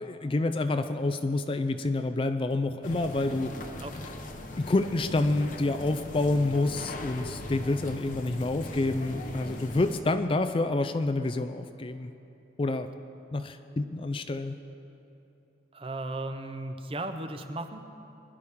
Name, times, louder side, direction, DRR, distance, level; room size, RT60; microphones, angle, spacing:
voice 1, 0.0-3.5 4.6-12.1 12.6-12.9 13.3-14.5, left 2 dB, 30° left, 9 dB, 0.4 m, -28 dB
sound 1, 2.8-10.0, left 1 dB, 45° left, 0.8 m, -40 dB
voice 2, 15.7-17.8, right 2 dB, 30° right, 8 dB, 0.6 m, -36 dB
21.5 x 11.0 x 3.6 m, 2.9 s
head